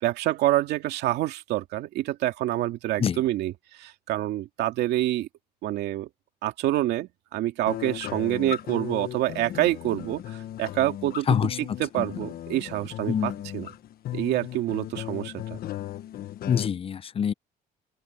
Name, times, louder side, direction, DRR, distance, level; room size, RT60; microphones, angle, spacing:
voice 1, 0.0-5.3 5.6-6.1 6.4-13.7 14.1-15.6, right 15 dB, 80° right, 2.3 m, -27 dB
sound 1, 7.7-16.7, left 12 dB, 65° left, 1.3 m, -36 dB
voice 2, 11.3-11.6 12.0-12.1 13.1-13.4 16.5-17.3, left 8 dB, 35° left, 0.6 m, -25 dB
open air
cardioid pair, 110°, 17 cm